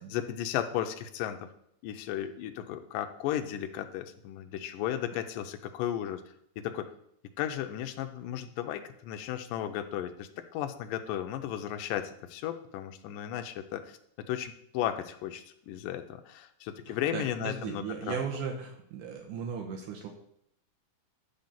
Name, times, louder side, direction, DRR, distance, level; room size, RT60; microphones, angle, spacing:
voice 1, 0.1-1.5 1.8-6.2 6.6-6.9 7.4-18.2, left 11 dB, 80° left, 7 dB, 2.3 m, -35 dB
voice 2, 16.9-20.1, right 6 dB, 75° right, 2 dB, 2.3 m, -37 dB
10.0 x 3.9 x 7.2 m, 0.71 s
omnidirectional pair, 3.9 m